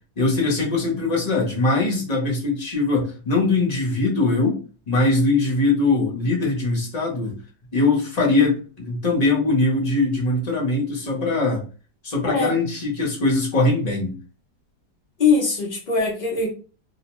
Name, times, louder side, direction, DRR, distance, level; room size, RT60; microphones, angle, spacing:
voice 1, 0.2-4.6 4.9-7.4 7.7-11.6 12.0-14.2, left 2 dB, 35° left, -3 dB, 0.6 m, -21 dB
voice 2, 15.2-16.5, left 4 dB, 80° left, -2 dB, 0.4 m, -21 dB
2.9 x 2.1 x 2.9 m, 0.36 s
omnidirectional pair, 1.8 m